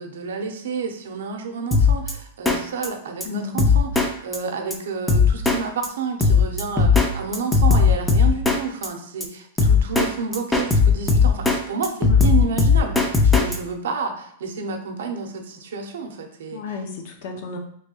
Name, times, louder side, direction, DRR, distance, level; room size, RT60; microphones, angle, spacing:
voice 1, 0.0-16.8, right 5 dB, 85° right, 4 dB, 0.6 m, -30 dB
Drum kit, 1.7-2.1 2.5-2.6 2.8-2.9 3.2-3.3 3.6-4.1 4.3-4.4 4.7-4.8 5.1-5.6 5.8-5.9 6.2-7.1 7.3-8.6 8.8-8.9 9.2-9.3 9.6-10.1 10.3-11.6 11.8-13.6, left 5 dB, 10° left, 0.3 m, -16 dB
voice 2, 3.2-3.6 12.0-12.3 16.5-17.6, left 4 dB, 55° left, 4 dB, 0.6 m, -32 dB
3.0 x 2.3 x 2.9 m, 0.68 s
supercardioid pair, 155°, 0 cm